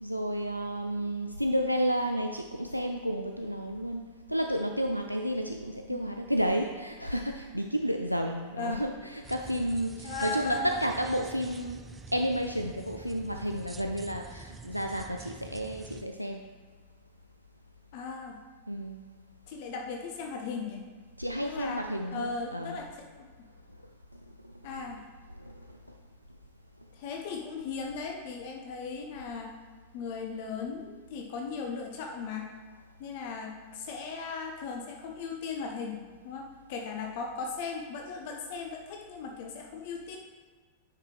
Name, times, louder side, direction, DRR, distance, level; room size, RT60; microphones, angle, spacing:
voice 1, 0.0-4.0 4.3-11.8 12.1-16.5 18.7-19.0 21.2-22.8 24.4-24.5 25.4-25.8, equal, 90° right, 3 dB, 0.3 m, -31 dB
sound 1, 9.2-16.1, right 4 dB, 15° right, 0.4 m, -47 dB
voice 2, 10.0-10.8 17.9-18.4 19.5-20.8 21.4-21.8 22.1-22.9 23.2-23.3 24.6-25.1 26.9-29.5 29.9-32.5 33.0-36.0 36.2-40.2, left 4 dB, 50° left, 2 dB, 0.7 m, -37 dB
10.0 x 4.9 x 3.2 m, 1.4 s
figure-of-eight pair, 90°, 0 cm